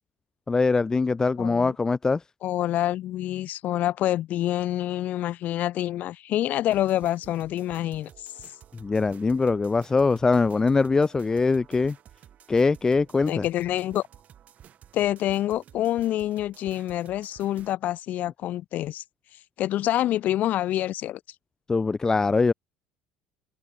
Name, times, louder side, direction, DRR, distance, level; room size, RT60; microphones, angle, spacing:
voice 1, 0.5-2.2 8.7-12.0 12.5-13.5 21.7-22.5, left 4 dB, 20° left, 0.3 m, -22 dB
voice 2, 1.4-1.7 2.4-8.3 13.3-14.1 14.9-19.0 19.6-21.2, left 13 dB, 60° left, 0.8 m, -27 dB
sound 1, 6.7-17.7, right 10 dB, 50° right, 7.7 m, -52 dB
supercardioid pair, 90°, 3 cm